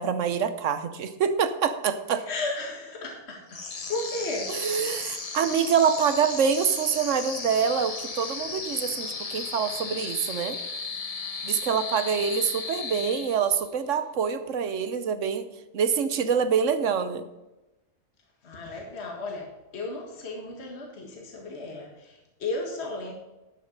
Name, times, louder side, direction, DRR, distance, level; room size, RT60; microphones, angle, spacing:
voice 1, 0.0-2.2 4.5-10.6 11.4-15.5 15.7-17.3, right 7 dB, 65° right, 11 dB, 1.1 m, -26 dB
voice 2, 2.3-4.6 18.4-23.1, left 2 dB, 50° left, 0 dB, 1.9 m, -34 dB
sound 1, 3.5-13.7, left 4 dB, 30° left, 0.8 m, -35 dB
12.0 x 6.6 x 5.3 m, 1.0 s
omnidirectional pair, 1.5 m